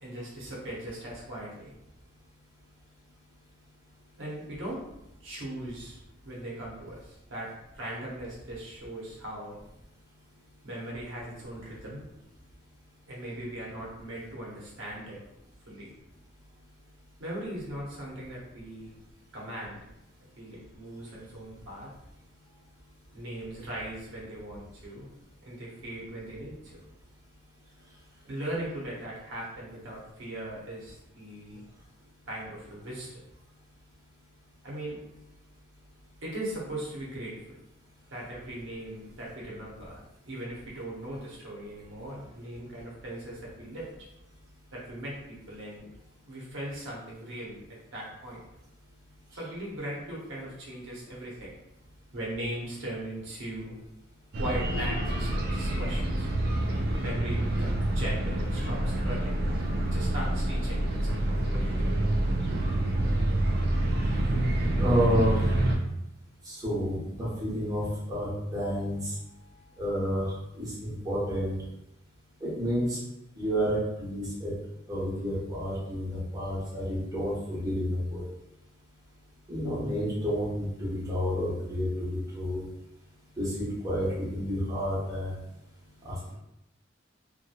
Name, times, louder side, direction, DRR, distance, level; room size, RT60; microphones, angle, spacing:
voice 1, 0.0-1.7 4.2-4.8 5.2-6.0 6.2-9.6 10.6-12.1 13.1-15.2 15.7-15.9 17.2-18.9 19.3-19.8 20.4-21.9 23.1-25.1 25.4-26.8 28.2-31.6 32.3-33.2 34.6-35.0 36.2-37.6 38.1-43.9 44.7-45.9 46.3-47.6 47.9-48.4 49.3-51.5 52.1-53.8 54.4-56.3 57.0-59.6 59.9-61.9 69.2-69.8, right 1 dB, 80° right, -4 dB, 0.8 m, -39 dB
sound 1, 54.3-65.8, right 1 dB, 55° right, 0.4 m, -27 dB
voice 2, 64.8-65.4 66.5-69.0 69.8-70.2 70.6-71.6 72.4-73.0 73.4-74.5 74.9-78.2 79.5-82.6 83.4-85.3 86.0-86.3, equal, 20° right, -8 dB, 0.9 m, -30 dB
2.8 x 2.1 x 2.2 m, 0.86 s
head